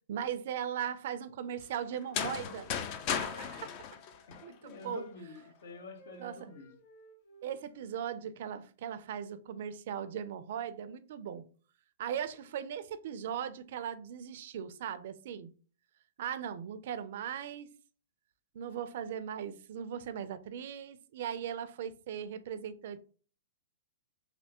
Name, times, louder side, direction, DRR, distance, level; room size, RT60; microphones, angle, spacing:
voice 1, 0.1-2.7 3.1-3.7 4.4-5.0 6.2-6.5 7.4-11.4 12.0-15.5 16.2-17.7 18.5-23.0, right 9 dB, 60° right, 0.4 m, -38 dB
Wind instrument woodwind instrument, 1.5-4.5 4.8-8.1, equal, 55° left, 1.4 m, -59 dB
sound 1, 2.0-4.9, left 7 dB, 35° left, 0.4 m, -36 dB
voice 2, 4.3-6.8, left 2 dB, 70° left, 0.8 m, -47 dB
3.3 x 2.6 x 2.9 m
hypercardioid pair, 145°, 0 cm